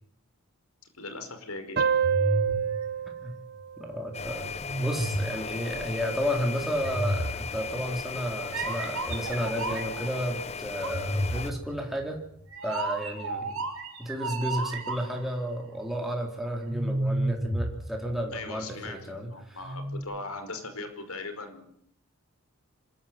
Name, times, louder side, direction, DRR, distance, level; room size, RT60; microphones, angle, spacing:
voice 1, 0.9-1.8 18.3-21.7, left 3 dB, 85° left, 8 dB, 5.3 m, -39 dB
sound 1, 1.8-4.9, right 7 dB, 50° right, 0.9 m, -29 dB
sound 2, 2.0-3.8 4.6-5.5 6.8-7.8 8.5-10.1 10.8-15.3 16.7-18.5 19.6-20.0, right 1 dB, 75° right, 5.9 m, -32 dB
voice 2, 3.8-4.5 4.8-12.2 12.6-13.5 14.0-19.6, equal, ahead, 0 dB, 3.9 m, -32 dB
sound 3, 4.1-11.5, left 5 dB, 30° left, 0.9 m, -37 dB
27.0 x 14.0 x 9.5 m, 0.68 s
head